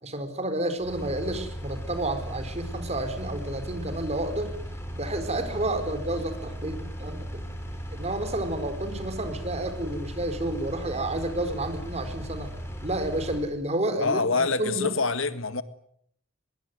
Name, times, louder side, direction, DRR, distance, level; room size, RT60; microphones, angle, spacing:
voice 1, 0.0-4.5 4.9-7.4 7.9-12.5 12.8-14.9, right 1 dB, 35° right, 4.7 m, -30 dB
Engine, 0.8-13.5, equal, 15° left, 6.6 m, -37 dB
voice 2, 14.0-15.6, left 4 dB, 85° left, 1.8 m, -26 dB
23.5 x 22.5 x 9.5 m
head